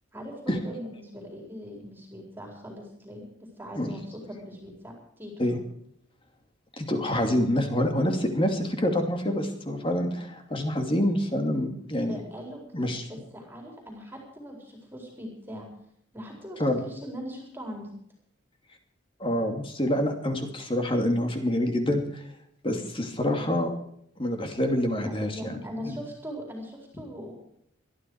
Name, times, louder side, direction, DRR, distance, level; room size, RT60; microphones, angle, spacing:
voice 1, 0.1-5.5 11.8-12.6 13.0-15.7 16.1-17.9 24.9-27.4, equal, 10° right, 0 dB, 4.3 m, -41 dB
voice 2, 6.8-12.2 12.7-13.0 16.6-16.8 19.2-22.2 22.6-23.7 24.2-25.6 25.8-26.0, left 1 dB, 25° left, 4 dB, 2.7 m, -26 dB
21.0 x 13.0 x 4.8 m, 0.69 s
head